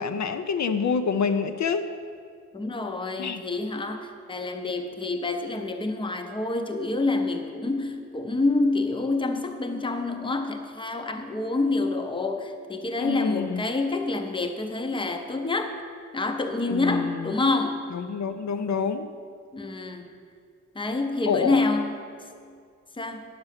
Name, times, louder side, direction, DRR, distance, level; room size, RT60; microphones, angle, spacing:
voice 1, 0.0-1.9 3.2-3.4 13.0-13.6 16.7-17.3 17.9-19.1 21.3-21.6, left 5 dB, 70° left, 9 dB, 0.5 m, -27 dB
voice 2, 2.5-15.7 16.1-17.8 19.5-20.1 20.8-22.0 23.0-23.2, left 3 dB, 15° left, 6 dB, 0.6 m, -27 dB
10.0 x 6.6 x 5.7 m, 2.2 s
wide cardioid pair, 175°, 30 cm